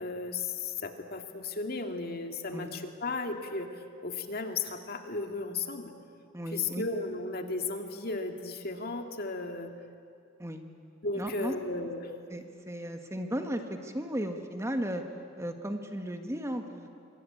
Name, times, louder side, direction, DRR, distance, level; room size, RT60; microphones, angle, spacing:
voice 1, 0.0-5.9 6.5-9.7 11.0-12.1, left 3 dB, 50° left, 5 dB, 2.1 m, -35 dB
voice 2, 6.3-6.8 10.4-10.6 11.1-11.5 12.3-15.0 15.4-16.9, equal, 15° right, 5 dB, 1.6 m, -35 dB
26.5 x 25.0 x 8.7 m, 2.4 s
head